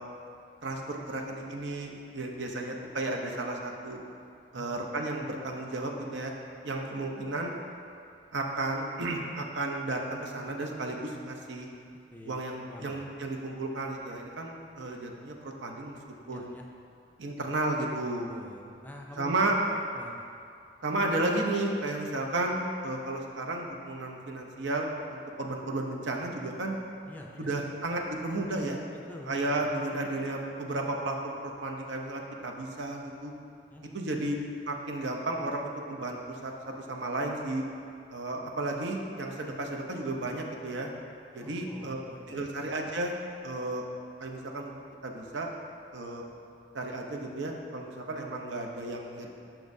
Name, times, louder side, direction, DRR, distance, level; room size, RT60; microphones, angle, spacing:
voice 1, 0.6-4.0 4.5-6.3 6.6-7.5 8.3-11.7 12.3-16.0 16.3-16.5 17.2-18.3 19.2-19.6 20.8-26.8 27.4-28.8 29.3-33.3 33.9-34.4 34.7-37.6 38.1-40.9 41.3-42.0 42.3-43.1 43.4-43.8 44.2-44.7 45.0-45.5 45.9-46.2 46.7-49.3, right 2 dB, 85° right, 1 dB, 0.7 m, -33 dB
voice 2, 4.5-4.9 12.1-13.1 16.3-16.7 18.3-19.4 19.7-20.2 27.1-27.5 28.9-29.6 33.7-34.0 41.4-42.4, left 1 dB, 10° left, 0 dB, 0.4 m, -47 dB
7.2 x 5.9 x 2.6 m, 2.4 s
head